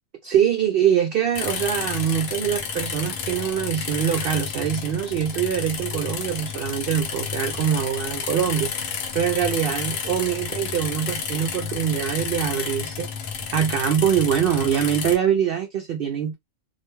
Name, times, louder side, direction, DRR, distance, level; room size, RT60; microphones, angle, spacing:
voice 1, 0.2-8.7 9.1-13.1 13.5-16.3, right 9 dB, 65° right, 0.5 m, -23 dB
sound 1, 1.3-15.2, left 6 dB, 80° left, 1.1 m, -31 dB
2.5 x 2.2 x 3.0 m
omnidirectional pair, 1.4 m